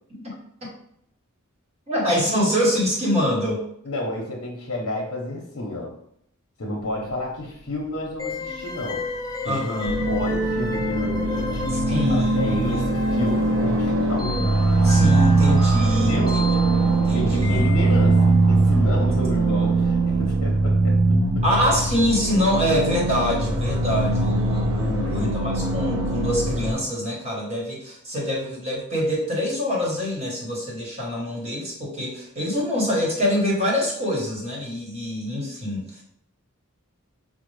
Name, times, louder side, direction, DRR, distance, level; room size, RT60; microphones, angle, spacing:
voice 1, 1.9-3.6 9.4-9.9 11.7-12.8 14.8-16.4 16.8-17.6 20.2-20.3 21.4-36.0, equal, 30° right, -3 dB, 1.1 m, -25 dB
voice 2, 3.8-5.9 6.6-9.1 9.4-9.7 10.1-14.3 15.9-16.5 17.1-21.4 24.8-25.3, left 1 dB, 70° left, -2 dB, 0.7 m, -31 dB
sound 1, 8.2-18.4, left 2 dB, 15° left, 0.4 m, -32 dB
sound 2, 9.8-26.7, right 2 dB, 90° right, 0.7 m, -21 dB
5.2 x 2.0 x 3.2 m, 0.72 s
head